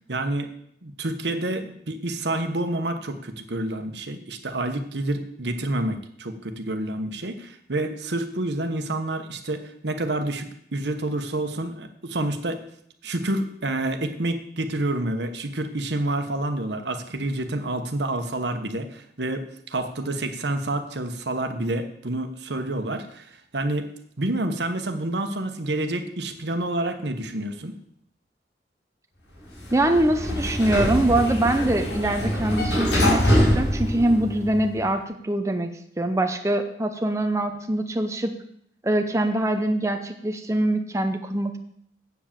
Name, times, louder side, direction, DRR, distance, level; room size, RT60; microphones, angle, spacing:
voice 1, 0.1-0.5 0.8-12.6 13.0-23.9 24.2-27.7, right 1 dB, 70° right, 7 dB, 1.2 m, -28 dB
Sliding door, 29.5-34.7, equal, 90° left, 4.6 m, -24 dB
voice 2, 29.7-35.7 36.0-38.3 38.8-41.6, right 1 dB, 15° right, 5 dB, 0.6 m, -23 dB
8.2 x 7.5 x 7.4 m, 0.70 s
head